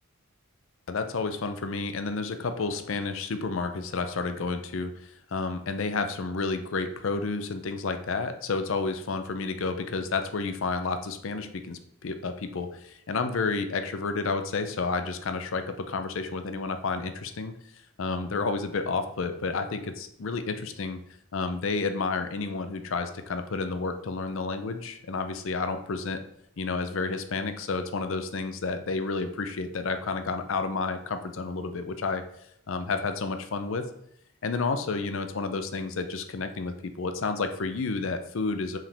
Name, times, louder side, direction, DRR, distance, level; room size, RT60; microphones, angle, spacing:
voice 1, 0.9-17.5 18.0-21.0 21.3-26.2 26.6-32.2 32.7-33.8 34.4-38.8, left 4 dB, 60° left, 8 dB, 0.5 m, -30 dB
5.7 x 4.9 x 3.3 m, 0.74 s
head